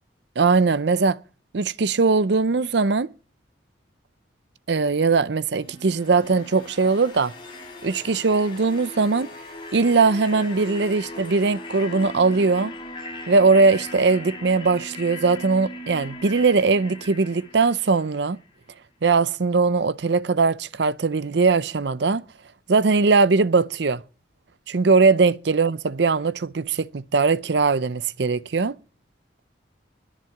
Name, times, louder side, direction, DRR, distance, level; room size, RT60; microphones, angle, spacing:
voice 1, 0.4-1.2 1.5-3.1 4.7-7.3 7.8-9.3 9.7-12.7 13.3-18.4 19.0-22.2 22.7-24.0 24.7-28.8, right 4 dB, 65° right, 0.6 m, -20 dB
sound 1, 5.6-18.5, left 1 dB, 25° left, 5.0 m, -39 dB
21.0 x 7.5 x 5.9 m
head